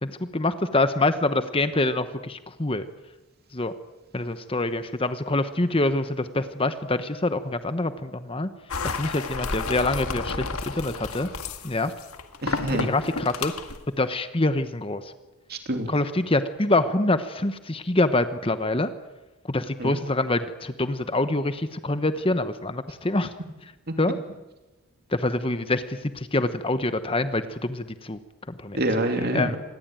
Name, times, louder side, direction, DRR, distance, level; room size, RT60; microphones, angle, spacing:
voice 1, 0.0-2.8 3.5-3.7 4.1-8.5 8.8-11.3 11.6-11.9 12.7-13.5 14.0-15.1 15.9-18.9 19.5-23.3 24.0-24.2 25.1-28.2 28.6-28.8 29.3-29.6, left 2 dB, 25° left, 11 dB, 1.1 m, -25 dB
sound 1, 8.7-13.8, left 4 dB, 75° left, 1.9 m, -32 dB
voice 2, 12.4-12.9 15.5-15.9 19.8-20.0 23.9-24.0 28.7-29.6, right 1 dB, 45° right, 6 dB, 2.9 m, -26 dB
26.0 x 19.5 x 9.1 m, 1.1 s
head